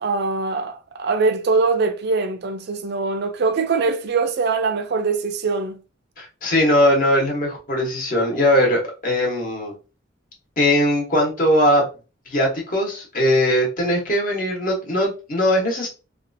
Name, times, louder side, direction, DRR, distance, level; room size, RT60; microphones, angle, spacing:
voice 1, 0.0-5.7, right 4 dB, 60° right, 0.4 m, -22 dB
voice 2, 6.2-9.7 10.6-11.8 12.3-15.9, left 1 dB, 45° left, 1.1 m, -20 dB
2.7 x 2.4 x 2.6 m
head